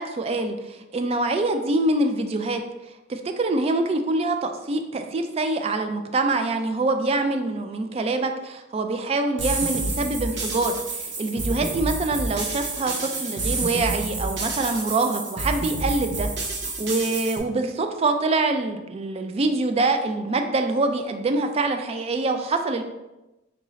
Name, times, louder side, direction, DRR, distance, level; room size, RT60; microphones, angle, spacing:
voice 1, 0.0-2.6 3.1-16.3 16.6-22.8, right 2 dB, 30° right, 6 dB, 0.3 m, -25 dB
sound 1, 9.4-17.4, right 2 dB, 60° right, 0.7 m, -29 dB
4.6 x 2.5 x 3.1 m, 1.0 s
head